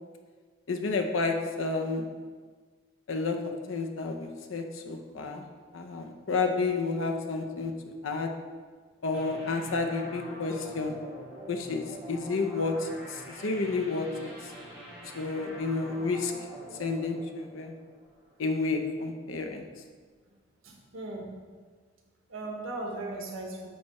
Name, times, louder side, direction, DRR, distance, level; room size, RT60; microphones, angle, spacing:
voice 1, 0.7-2.1 3.1-5.5 5.7-8.3 9.0-11.0 11.5-14.5 15.1-16.3 16.8-17.7 18.4-19.6, left 3 dB, 80° left, 4 dB, 0.7 m, -31 dB
sound 1, 9.1-18.5, equal, 5° right, 1.5 m, -45 dB
voice 2, 20.6-21.3 22.3-23.7, right 2 dB, 85° right, 0 dB, 1.3 m, -37 dB
9.3 x 3.1 x 4.2 m, 1.5 s
head